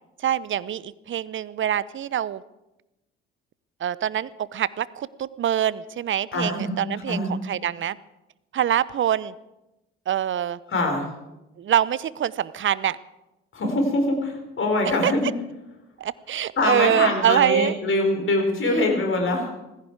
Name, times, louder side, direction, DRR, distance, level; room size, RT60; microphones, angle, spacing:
voice 1, 0.2-2.4 3.8-8.0 8.5-9.3 10.1-10.6 11.6-13.0 15.0-15.1 16.0-17.8, right 10 dB, 40° right, 19 dB, 0.7 m, -24 dB
voice 2, 6.3-6.8 7.1-7.3 10.7-11.1 13.5-15.3 16.6-19.5, left 2 dB, 40° left, 3 dB, 4.4 m, -23 dB
18.5 x 15.5 x 4.7 m, 0.97 s
hypercardioid pair, 50°, 30 cm